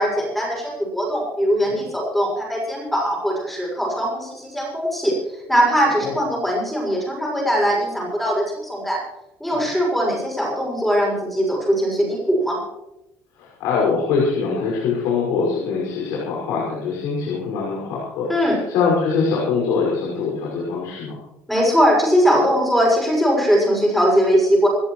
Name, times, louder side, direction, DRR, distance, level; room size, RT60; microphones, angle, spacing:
voice 1, 0.0-5.1 5.5-9.0 9.4-12.6 18.3-18.6 21.5-24.7, equal, ahead, -3 dB, 6.5 m, -20 dB
voice 2, 5.8-6.2 9.5-9.7 13.4-21.2, left 5 dB, 75° left, -4 dB, 5.8 m, -23 dB
27.5 x 13.5 x 3.2 m, 0.91 s
cardioid pair, 175°, 6 cm